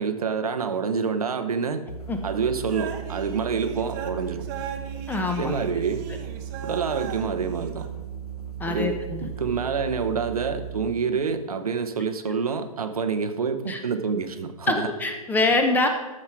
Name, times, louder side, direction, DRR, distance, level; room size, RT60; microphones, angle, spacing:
voice 1, 0.0-1.8 2.2-4.4 5.4-6.0 6.6-7.9 8.7-14.9, right 5 dB, 75° right, 8 dB, 0.9 m, -27 dB
sound 1, 1.9-11.0, right 9 dB, 90° left, 1.2 m, -36 dB
sound 2, 2.7-7.9, right 8 dB, 35° right, 1.0 m, -38 dB
voice 2, 5.1-5.5 8.6-9.3 13.7-13.8 14.7-15.9, left 3 dB, 10° left, 6 dB, 0.9 m, -24 dB
13.5 x 5.6 x 4.5 m, 1.1 s
figure-of-eight pair, 120°, 19 cm